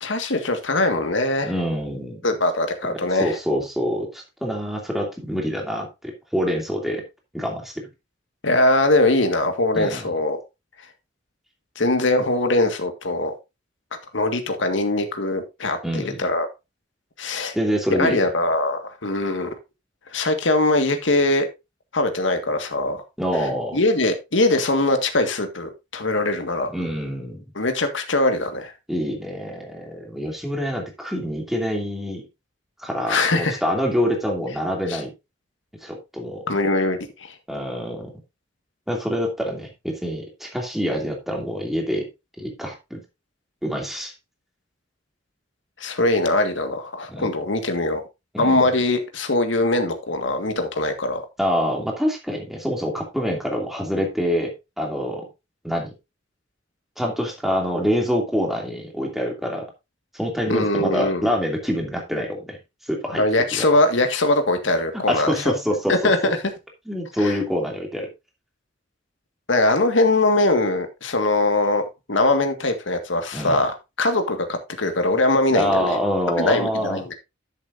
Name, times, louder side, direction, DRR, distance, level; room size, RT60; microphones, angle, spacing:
voice 1, 0.0-1.5 2.2-3.3 8.4-10.4 11.8-13.3 14.1-16.5 17.2-17.6 18.0-19.5 20.1-21.5 21.9-23.0 23.7-26.7 27.6-28.7 33.1-33.6 34.9-35.0 36.5-37.3 45.8-48.0 48.4-51.2 60.5-61.2 63.1-65.6 65.9-66.4 67.2-67.4 69.5-76.0 76.4-77.1, left 2 dB, 80° left, 1.8 m, -21 dB
voice 2, 1.4-2.2 3.2-7.0 7.3-7.9 9.7-10.1 15.8-16.2 17.5-18.2 23.2-23.8 26.7-27.4 28.9-32.2 32.8-35.1 35.8-36.4 37.5-38.1 38.9-42.1 42.4-43.0 43.6-44.1 47.1-47.3 48.3-48.7 51.4-55.3 55.6-55.9 57.0-59.7 60.1-62.6 62.9-63.2 63.5-63.7 65.1-66.3 66.9-68.1 73.3-73.6 75.5-77.0, equal, ahead, 2.7 m, -26 dB
12.0 x 7.4 x 2.6 m
head